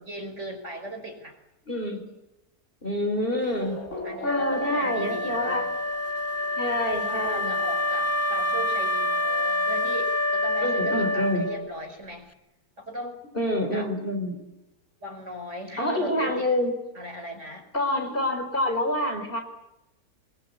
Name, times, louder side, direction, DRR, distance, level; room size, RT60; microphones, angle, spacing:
voice 1, 0.0-1.4 4.0-5.7 7.1-12.3 12.8-13.2 13.7-13.9 15.0-16.5 16.9-17.7, equal, 50° right, 3 dB, 5.6 m, -38 dB
voice 2, 1.7-2.1 2.8-3.8 4.2-5.6 6.6-7.6 10.6-11.4 13.3-14.4 15.8-16.8 17.7-19.4, left 1 dB, 35° left, 4 dB, 4.8 m, -27 dB
Race car auto racing / Accelerating revving vroom, 3.6-9.7, left 1 dB, 50° left, 6.4 m, -43 dB
Wind instrument woodwind instrument, 4.2-11.8, left 1 dB, 15° left, 0.7 m, -27 dB
24.5 x 22.0 x 8.5 m, 0.92 s
omnidirectional pair, 1.6 m